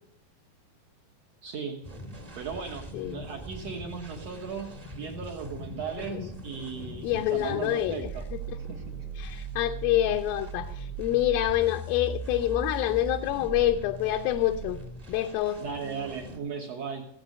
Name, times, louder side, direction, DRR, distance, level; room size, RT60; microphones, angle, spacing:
voice 1, 1.4-1.8 2.4-8.2 8.7-8.9 15.6-17.1, right 6 dB, 60° right, 1 dB, 1.8 m, -37 dB
sound 1, 1.8-16.4, right 3 dB, 20° right, 1.1 m, -40 dB
voice 2, 7.0-8.0 9.2-14.8 15.1-15.6, left 13 dB, 80° left, 4 dB, 2.4 m, -27 dB
16.5 x 7.8 x 6.5 m, 0.69 s
omnidirectional pair, 4.4 m